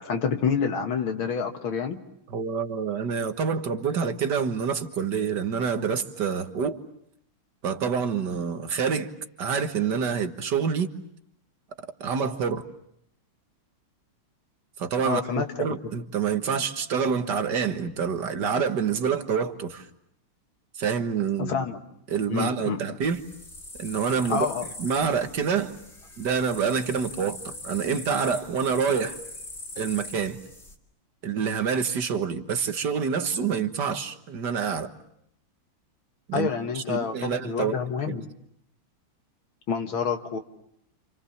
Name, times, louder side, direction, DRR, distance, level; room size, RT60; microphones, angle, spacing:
voice 1, 0.0-2.0 15.0-15.5 21.4-21.8 22.3-22.8 24.3-24.6 36.3-38.2 39.7-40.4, left 6 dB, 70° left, 2.4 m, -28 dB
voice 2, 2.3-6.8 7.6-9.1 9.4-10.9 12.0-12.7 14.8-19.9 20.8-21.6 22.1-23.2 23.8-24.5 24.8-25.8 26.2-29.2 29.8-30.4 31.2-34.9 36.3-36.5 36.7-37.8 38.1-38.2, right 6 dB, 55° right, 2.0 m, -27 dB
sound 1, 23.0-30.8, left 2 dB, 30° left, 3.3 m, -42 dB
29.5 x 28.0 x 7.2 m
omnidirectional pair, 2.4 m